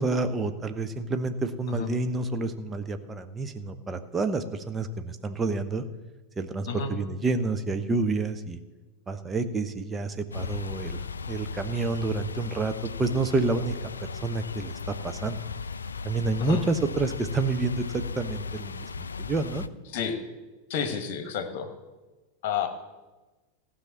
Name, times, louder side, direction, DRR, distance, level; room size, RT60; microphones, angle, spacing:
voice 1, 0.0-5.8 6.4-8.6 9.1-13.8 14.2-14.7 15.0-15.4 16.0-19.7, right 3 dB, 15° right, 8 dB, 0.8 m, -29 dB
sound 1, 10.3-19.7, left 5 dB, 75° left, 0.3 m, -36 dB
voice 2, 20.7-21.7 22.4-22.7, left 6 dB, 50° left, 8 dB, 1.4 m, -30 dB
15.0 x 5.7 x 7.3 m, 1.2 s
figure-of-eight pair, 90°, 0 cm